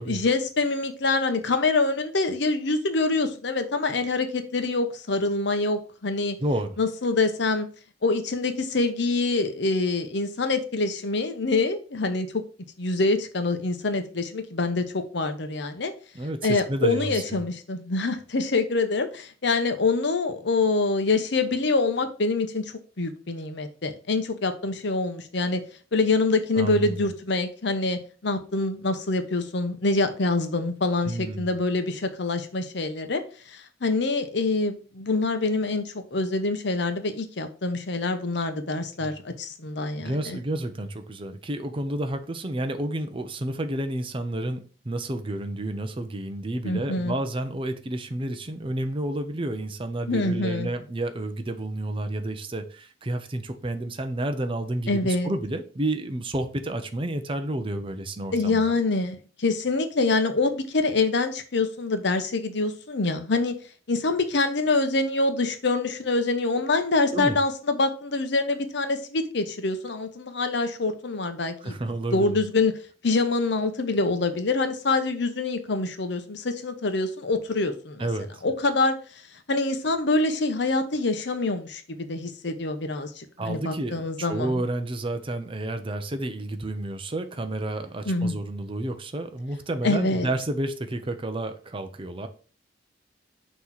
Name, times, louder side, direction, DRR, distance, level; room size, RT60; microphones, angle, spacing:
voice 1, 0.0-6.4 6.8-7.7 8.0-12.4 12.8-15.9 16.4-25.6 25.9-33.2 33.5-40.4 46.6-47.1 50.1-50.7 54.9-55.3 58.3-63.5 63.9-71.8 72.1-72.7 73.0-78.1 78.4-79.0 79.5-84.6 88.1-88.3 89.8-90.3, left 3 dB, 65° left, 0.8 m, -25 dB
voice 2, 6.4-6.7 16.1-17.4 26.6-27.1 31.0-31.5 39.0-39.1 40.0-58.7 67.1-67.4 71.6-72.4 78.0-78.4 83.4-92.3, right 1 dB, 30° right, 0.6 m, -30 dB
6.0 x 3.1 x 5.6 m
head